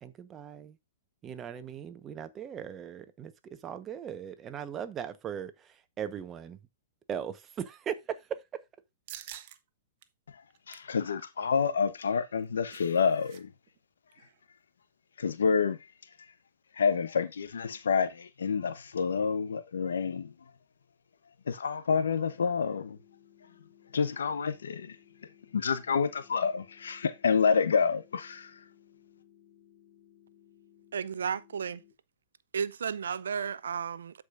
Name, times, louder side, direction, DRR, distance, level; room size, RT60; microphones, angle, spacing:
voice 1, 0.0-0.8 1.2-5.7 6.0-6.6 7.1-8.6, right 8 dB, 25° right, 1.1 m, -39 dB
sound 1, 9.1-9.6 10.0-10.1 10.5-10.9 12.2-13.4 13.7-13.8 14.1-14.4, right 12 dB, 50° right, 0.9 m, -47 dB
voice 2, 10.7-13.5 15.2-15.8 16.8-20.3 21.5-23.0 23.9-24.9 25.5-28.5, left 6 dB, 80° left, 0.9 m, -28 dB
sound 2, 21.9-31.9, left 11 dB, 25° left, 3.5 m, -61 dB
voice 3, 30.9-31.8 32.5-34.2, right 7 dB, 80° right, 0.5 m, -33 dB
13.0 x 5.0 x 2.5 m
hypercardioid pair, 120°, 0 cm